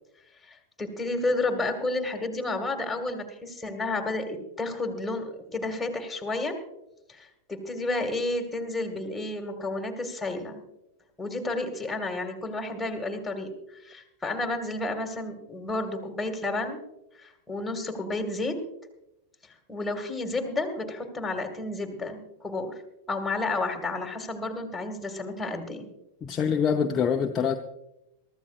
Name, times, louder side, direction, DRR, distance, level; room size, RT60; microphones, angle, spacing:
voice 1, 0.4-6.6 7.1-10.6 11.2-13.5 13.8-16.8 17.2-18.6 19.7-22.7 23.1-25.9, left 2 dB, 10° left, 2.0 m, -31 dB
voice 2, 26.2-27.6, left 7 dB, 25° left, 0.8 m, -25 dB
23.0 x 14.0 x 2.5 m
figure-of-eight pair, 90°, 0 cm